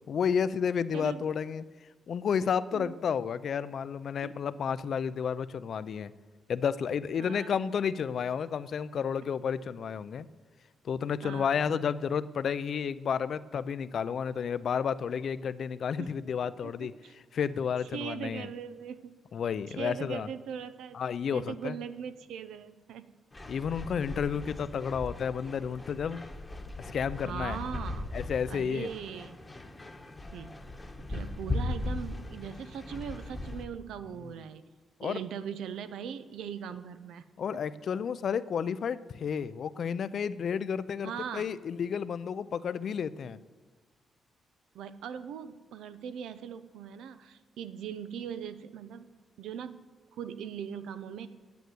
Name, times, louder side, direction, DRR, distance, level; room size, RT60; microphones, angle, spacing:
voice 1, 0.1-1.6 2.1-6.1 6.5-10.3 10.8-16.9 17.3-18.5 19.3-20.3 20.9-21.8 23.5-26.2 26.9-27.6 28.1-28.9 34.2-34.3 35.0-35.2 37.4-43.4, left 7 dB, 55° left, 15 dB, 0.5 m, -31 dB
voice 2, 7.2-7.5 11.2-11.7 16.0-16.1 16.6-17.1 17.9-19.1 19.7-21.0 21.3-23.1 27.2-28.1 28.5-29.4 30.3-30.6 31.0-34.7 35.0-37.3 41.0-41.5 44.7-49.1 49.4-49.9 50.1-51.3, right 8 dB, 90° right, 12 dB, 0.7 m, -40 dB
sound 1, 23.3-33.7, left 2 dB, 15° left, 1.1 m, -39 dB
9.3 x 8.0 x 9.3 m, 1.3 s
cardioid pair, 115°, 0 cm